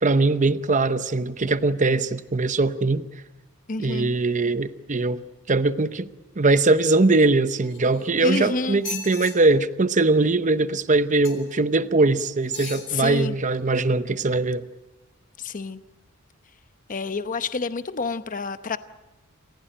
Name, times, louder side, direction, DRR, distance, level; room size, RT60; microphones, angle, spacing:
voice 1, 0.0-3.0 3.8-5.2 5.5-6.1 6.4-14.6, right 3 dB, 35° right, 0.8 m, -21 dB
voice 2, 3.7-4.1 8.2-8.8 12.9-13.3 15.4-15.8 16.9-18.8, left 3 dB, 35° left, 0.8 m, -28 dB
sound 1, 7.6-8.3 8.7-9.3 11.2-11.6 12.4-12.9 13.5-13.6, left 4 dB, 60° left, 4.5 m, -37 dB
28.5 x 15.5 x 9.0 m
head